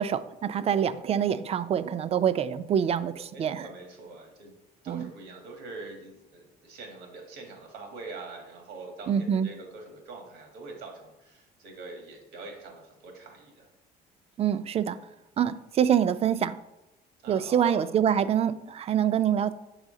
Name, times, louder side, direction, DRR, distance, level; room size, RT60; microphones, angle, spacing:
voice 1, 0.0-3.6 4.9-5.1 9.1-9.5 14.4-15.0 15.4-16.6 17.3-19.5, right 9 dB, 35° right, 14 dB, 0.3 m, -25 dB
voice 2, 3.3-4.5 4.8-13.7 17.2-17.8, right 3 dB, 85° right, 2 dB, 1.5 m, -44 dB
6.3 x 4.8 x 3.7 m, 0.96 s
cardioid pair, 110°, 17 cm